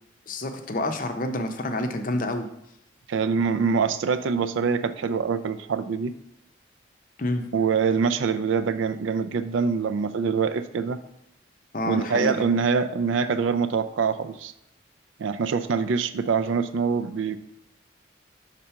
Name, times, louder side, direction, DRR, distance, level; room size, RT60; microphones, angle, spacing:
voice 1, 0.3-2.5 7.2-7.4 11.7-12.3, left 1 dB, 40° left, 6 dB, 0.6 m, -28 dB
voice 2, 3.1-6.1 7.5-11.0 11.9-14.5 15.2-17.4, right 5 dB, 75° right, 13 dB, 0.4 m, -24 dB
5.7 x 3.7 x 5.6 m, 0.81 s
head